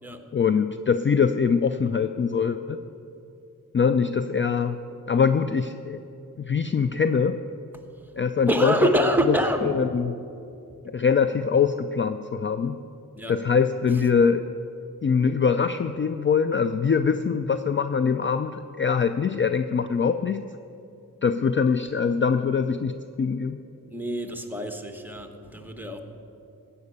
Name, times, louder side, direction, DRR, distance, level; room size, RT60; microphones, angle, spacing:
voice 1, 0.3-2.8 3.7-4.8 5.1-6.0 6.4-7.4 8.2-8.7 9.6-10.1 10.8-12.8 13.3-14.5 15.0-20.4 21.2-23.6, left 6 dB, 35° left, 10 dB, 0.4 m, -23 dB
voice 2, 8.5-9.8 13.2-13.4 23.9-26.0, right 1 dB, 5° right, 6 dB, 1.2 m, -26 dB
14.5 x 5.6 x 8.5 m, 2.7 s
cardioid pair, 65°, 36 cm